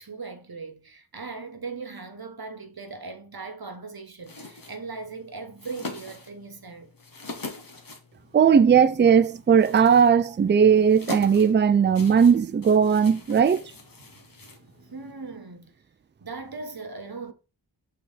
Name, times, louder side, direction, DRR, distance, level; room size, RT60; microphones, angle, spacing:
voice 1, 0.0-6.9 14.9-15.7 16.2-17.3, right 4 dB, 55° right, 1.2 m, -39 dB
sound 1, 4.2-15.1, left 3 dB, 50° left, 1.3 m, -43 dB
voice 2, 8.3-13.6, right 7 dB, 25° right, 0.4 m, -18 dB
6.1 x 4.1 x 4.0 m
wide cardioid pair, 50°, 45 cm